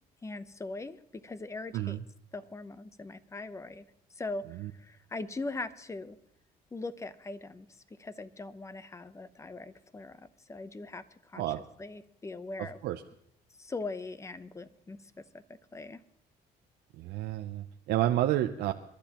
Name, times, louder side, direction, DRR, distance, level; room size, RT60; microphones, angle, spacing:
voice 1, 0.2-2.0 2.3-3.8 4.2-6.2 6.7-7.7 8.0-11.4 11.8-12.8 13.6-15.0 15.7-16.0, left 3 dB, 15° left, 13 dB, 0.8 m, -40 dB
voice 2, 17.0-18.7, right 13 dB, 75° right, 6 dB, 0.6 m, -30 dB
28.0 x 12.0 x 3.0 m, 0.74 s
cardioid pair, 110°, 17 cm